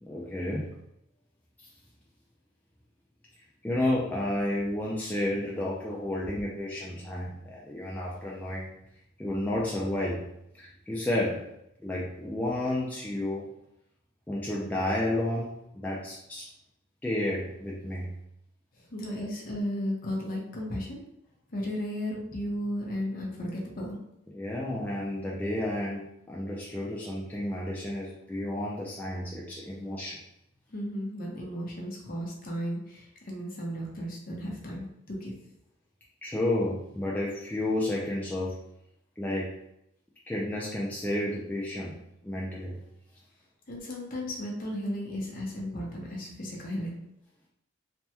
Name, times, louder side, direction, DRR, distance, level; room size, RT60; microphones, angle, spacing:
voice 1, 0.0-0.7 1.6-1.7 3.6-8.7 9.2-10.2 10.5-11.5 11.8-13.5 14.3-16.5 17.0-18.1 19.2-19.3 24.3-30.2 36.2-38.6 39.2-39.5 40.3-42.0 42.2-42.8, left 1 dB, 10° left, -6 dB, 0.3 m, -31 dB
voice 2, 18.9-21.0 21.5-24.0 30.7-35.3 43.7-47.0, equal, 45° left, -2 dB, 0.7 m, -34 dB
3.3 x 2.1 x 2.9 m, 0.80 s
head